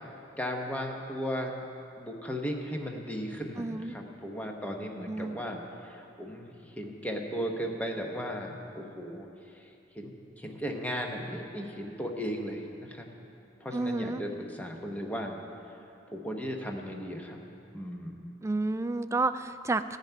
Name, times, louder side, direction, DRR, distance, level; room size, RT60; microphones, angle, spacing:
voice 1, 0.4-1.7 2.0-9.7 9.9-13.1 13.6-15.4 16.1-17.4 17.7-18.2, equal, 10° left, 1 dB, 1.0 m, -36 dB
voice 2, 3.6-4.0 5.1-5.4 13.7-14.2 18.4-20.0, right 2 dB, 15° right, 10 dB, 0.3 m, -30 dB
14.5 x 5.8 x 9.2 m, 2.7 s
head